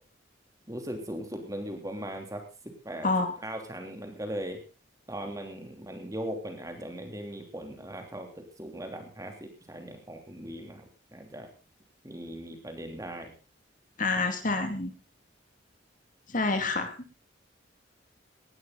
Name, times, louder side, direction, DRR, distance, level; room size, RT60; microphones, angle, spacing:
voice 1, 0.7-3.1 3.4-4.6 5.1-10.8 11.1-11.5 12.0-13.3, right 1 dB, 20° right, 4 dB, 3.1 m, -39 dB
voice 2, 14.0-14.9 16.3-16.9, left 3 dB, 45° left, 6 dB, 2.4 m, -27 dB
19.0 x 12.5 x 4.0 m, 0.33 s
head